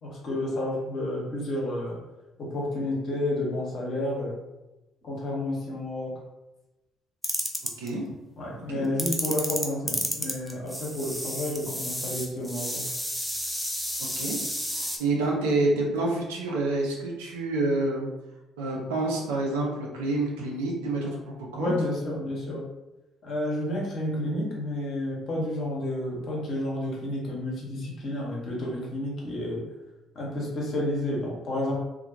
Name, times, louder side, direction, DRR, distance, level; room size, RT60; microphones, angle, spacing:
voice 1, 0.0-2.0 2.4-4.3 5.0-6.1 8.4-12.8 21.6-22.6 23.2-29.6 30.1-31.8, left 1 dB, 55° left, -3 dB, 0.8 m, -30 dB
sound 1, 7.2-7.9 9.0-15.0, equal, ahead, 0.5 m, -31 dB
voice 2, 8.5-8.9 14.2-14.4 14.7-18.1 18.6-21.1 21.5-21.7, right 2 dB, 80° right, -2 dB, 0.5 m, -28 dB
2.4 x 2.2 x 2.7 m, 1.0 s
hypercardioid pair, 50°, 0 cm